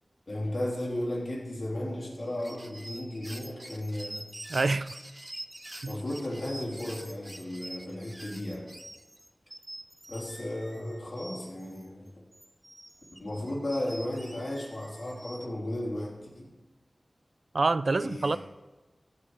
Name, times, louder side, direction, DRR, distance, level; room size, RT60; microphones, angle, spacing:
voice 1, 0.3-4.3 5.9-8.7 10.1-12.1 13.2-16.5 17.9-18.4, left 1 dB, 55° left, -4 dB, 3.3 m, -35 dB
sound 1, 2.3-11.9 12.3-15.5, right 1 dB, 20° right, 0.7 m, -46 dB
voice 2, 4.5-5.0 5.8-6.0 17.5-18.4, right 3 dB, 70° right, 15 dB, 0.3 m, -26 dB
15.0 x 5.6 x 4.9 m, 1.2 s
wide cardioid pair, 55°, 0 cm